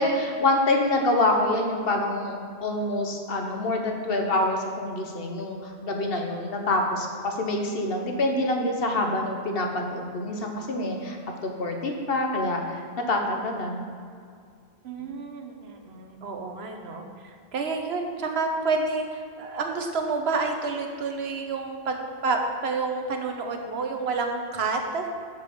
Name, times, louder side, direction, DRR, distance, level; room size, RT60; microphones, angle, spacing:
voice 1, 0.0-11.2 11.4-13.8, left 2 dB, 65° left, 2 dB, 1.2 m, -26 dB
voice 2, 14.8-25.1, right 3 dB, 85° right, 4 dB, 1.1 m, -29 dB
6.7 x 5.3 x 6.7 m, 2.2 s
omnidirectional pair, 1.0 m